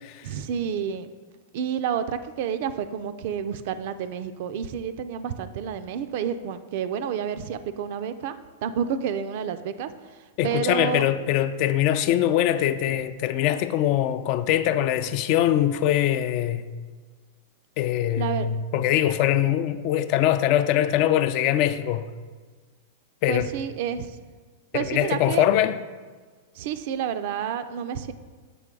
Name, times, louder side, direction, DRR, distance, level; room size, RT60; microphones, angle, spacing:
voice 1, 0.2-1.1 1.5-8.3 8.6-11.1 18.2-18.5 23.3-24.2 24.7-25.4 26.6-28.1, right 8 dB, 60° right, 0.4 m, -29 dB
voice 2, 10.4-16.7 17.8-22.1 23.2-23.5 24.7-25.8, left 11 dB, 50° left, 0.3 m, -22 dB
6.8 x 4.4 x 3.7 m
hypercardioid pair, 110°, 0 cm